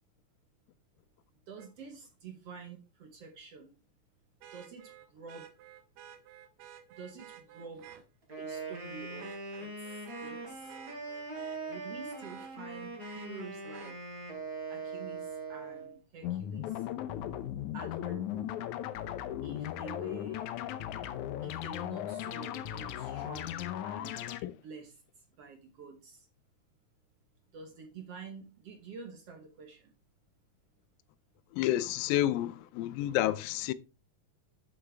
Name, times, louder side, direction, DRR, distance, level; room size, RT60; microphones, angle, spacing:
voice 1, 1.5-3.7 4.5-5.5 7.0-7.9 8.4-10.7 11.7-13.9 14.7-16.9 17.7-18.5 19.4-20.5 21.4-24.2 24.6-25.0 25.4-26.3 27.5-29.9, right 5 dB, 60° right, 1.8 m, -48 dB
Vehicle horn car horn honking, 1.6-1.7 4.4-8.0 8.6-8.8 9.2-11.8 12.2-14.0 15.8-15.9, right 11 dB, 80° right, 2.5 m, -52 dB
Wind instrument woodwind instrument, 8.2-16.0, right 3 dB, 30° right, 3.1 m, -41 dB
sound 1, 16.2-24.4, left 11 dB, 75° left, 1.9 m, -37 dB
voice 2, 31.5-33.7, left 13 dB, 90° left, 2.4 m, -30 dB
9.3 x 7.5 x 3.4 m
omnidirectional pair, 4.0 m